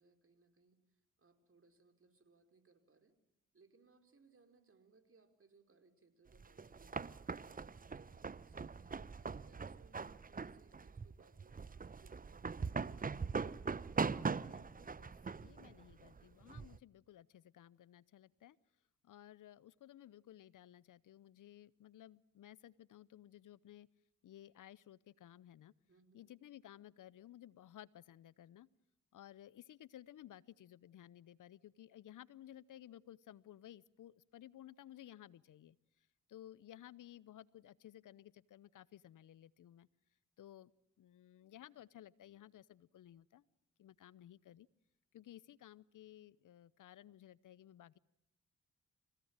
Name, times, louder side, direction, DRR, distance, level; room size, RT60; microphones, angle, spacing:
voice 1, 0.0-3.1 3.5-8.8 9.3-13.2 25.9-26.3, right 4 dB, 40° right, 7 dB, 4.7 m, -69 dB
sound 1, 6.3-16.8, right 5 dB, 25° right, 0.8 m, -41 dB
voice 2, 14.3-18.6 19.0-23.9 24.2-25.7 26.1-28.7 29.1-35.8 36.3-39.9 40.4-40.7 41.0-43.4 43.8-44.7 45.1-48.0, left 12 dB, 70° left, 21 dB, 0.8 m, -57 dB
27.5 x 17.0 x 8.9 m, 0.84 s
supercardioid pair, 60°, 33 cm